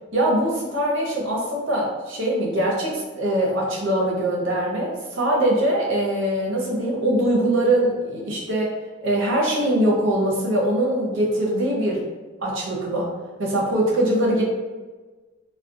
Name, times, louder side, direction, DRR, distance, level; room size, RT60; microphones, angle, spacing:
voice 1, 0.1-8.7 9.0-12.0 12.4-13.1 13.4-14.4, right 1 dB, 85° right, -3 dB, 0.7 m, -22 dB
2.4 x 2.2 x 2.5 m, 1.3 s
head